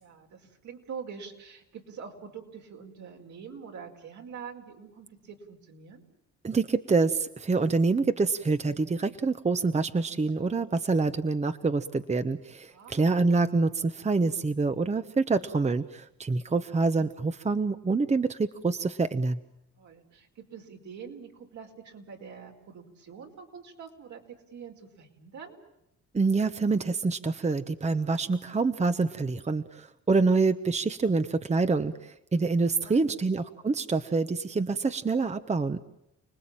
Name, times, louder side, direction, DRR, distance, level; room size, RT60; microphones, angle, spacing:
voice 1, 0.0-6.0 12.7-13.2 19.8-25.6 32.8-33.2, right 6 dB, 70° right, 2 dB, 4.9 m, -45 dB
voice 2, 6.4-19.4 26.1-35.8, right 3 dB, 20° right, 10 dB, 1.0 m, -26 dB
30.0 x 20.0 x 8.9 m, 0.86 s
cardioid pair, 90°, 30 cm